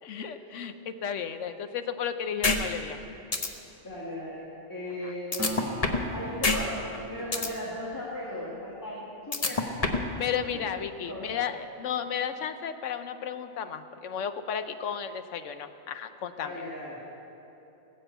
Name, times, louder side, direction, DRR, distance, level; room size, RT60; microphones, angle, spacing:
voice 1, 0.0-3.0 5.0-5.1 10.2-16.5, left 8 dB, 90° left, 9 dB, 1.1 m, -33 dB
sound 1, 2.4-2.6 2.9-3.0 3.3-3.5 5.3-6.1 6.4-6.6 6.9-7.5 9.3-10.1, left 3 dB, 35° left, 1.0 m, -25 dB
voice 2, 3.8-5.7 6.1-6.8 7.1-9.7 10.5-10.7 11.1-11.4 16.4-17.0, left 1 dB, 15° left, -6 dB, 1.9 m, -37 dB
Acoustic guitar, 5.4-9.1, right 1 dB, 15° right, 0.9 m, -42 dB
20.0 x 7.6 x 8.0 m, 3.0 s
omnidirectional pair, 1.2 m